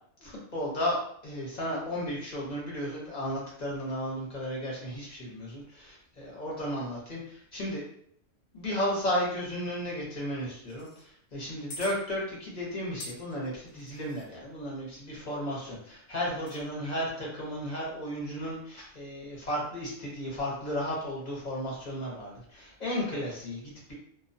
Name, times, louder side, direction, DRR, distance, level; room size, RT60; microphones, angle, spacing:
voice 1, 0.2-1.0 1.2-7.8 8.5-23.9, equal, 40° left, -4 dB, 0.9 m, -34 dB
sound 1, 10.7-11.0 11.7-11.9 13.0-14.3 16.3-16.6, left 1 dB, 80° left, 1.0 m, -45 dB
2.3 x 2.2 x 2.6 m, 0.64 s
omnidirectional pair, 1.3 m